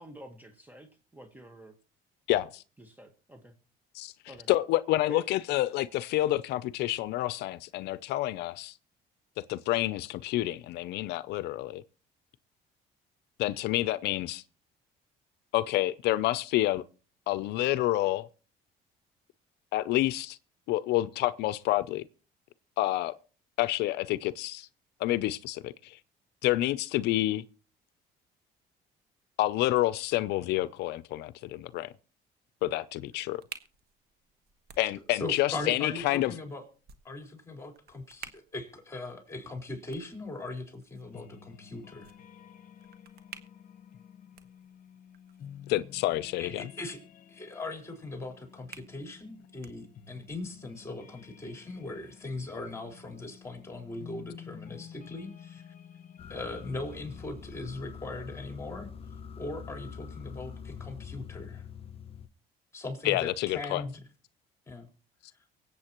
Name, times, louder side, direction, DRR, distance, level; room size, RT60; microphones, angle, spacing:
voice 1, 0.0-1.7 2.8-3.5 4.3-4.5 5.1-5.3 35.5-35.7, right 1 dB, 10° right, 1.4 m, -47 dB
voice 2, 2.3-2.6 3.9-4.1 4.5-8.7 9.5-11.8 13.4-14.4 15.5-16.8 17.3-18.3 19.7-20.4 20.7-22.1 22.8-23.2 23.6-24.7 25.0-26.0 26.4-27.4 29.4-31.9 32.6-33.4 34.8-36.3 45.7-46.7 63.0-63.8, left 16 dB, 80° left, 0.5 m, -28 dB
sound 1, 33.1-50.3, right 8 dB, 65° right, 1.5 m, -55 dB
voice 3, 35.1-36.6 37.0-42.1 46.4-47.0 47.3-55.7 56.3-58.9 59.4-61.7 62.7-63.9 64.7-64.9, left 2 dB, 15° left, 4.3 m, -40 dB
sound 2, 41.0-57.9, left 8 dB, 55° left, 1.0 m, -51 dB
sound 3, 56.2-62.3, left 7 dB, 35° left, 0.7 m, -44 dB
24.0 x 8.3 x 3.0 m
cardioid pair, 110°, 17 cm